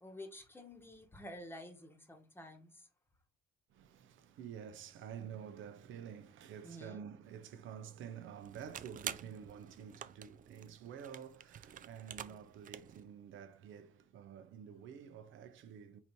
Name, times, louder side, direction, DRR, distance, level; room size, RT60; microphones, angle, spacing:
voice 1, 0.0-2.9 6.6-7.1, left 1 dB, 10° left, 1.1 m, -50 dB
voice 2, 3.7-16.0, right 8 dB, 75° right, 0.7 m, -49 dB
sound 1, 8.4-13.0, right 9 dB, 40° right, 0.4 m, -48 dB
4.1 x 2.7 x 4.5 m
cardioid pair, 75°, 20 cm